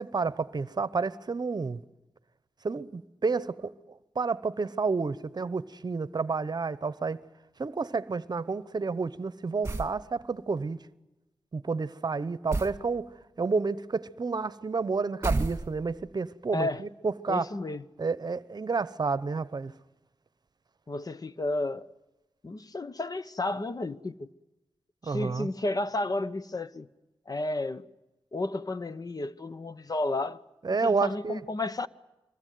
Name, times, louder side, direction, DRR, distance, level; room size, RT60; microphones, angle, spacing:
voice 1, 0.0-1.8 2.6-3.7 4.1-7.2 7.6-10.8 11.5-17.5 18.0-19.7 25.1-25.5 30.6-31.4, right 4 dB, 45° right, 0.9 m, -30 dB
sound 1, 9.6-10.0 12.5-12.8 15.2-16.0, right 2 dB, 25° right, 2.0 m, -30 dB
voice 2, 16.5-16.8 17.3-17.8 20.9-21.9 22.4-24.3 25.0-26.9 27.3-27.9 28.3-30.4 30.7-31.9, left 2 dB, 40° left, 1.0 m, -32 dB
25.5 x 22.0 x 9.4 m
cardioid pair, 55°, 9 cm